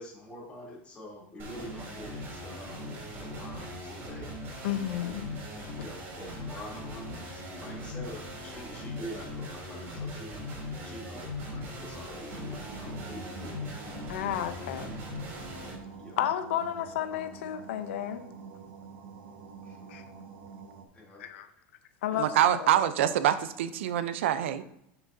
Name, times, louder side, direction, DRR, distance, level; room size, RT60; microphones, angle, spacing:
voice 1, 0.0-4.7 5.0-5.1 5.8-10.4 10.8-13.7 16.0-16.2 19.6-19.9 20.9-21.5 22.1-22.2 24.6-24.7, left 1 dB, 20° left, 3.0 m, -46 dB
sound 1, 1.4-15.7, left 1 dB, 35° right, 3.2 m, -40 dB
voice 2, 4.6-5.3 5.8-5.9 14.1-14.9 16.2-18.2 19.9-20.0 21.2-21.5 22.0-22.8, left 11 dB, 85° left, 0.7 m, -32 dB
sound 2, 12.3-20.8, right 5 dB, 70° right, 1.3 m, -47 dB
voice 3, 22.2-24.6, right 11 dB, 85° right, 0.6 m, -25 dB
10.0 x 6.0 x 2.7 m
supercardioid pair, 145°, 6 cm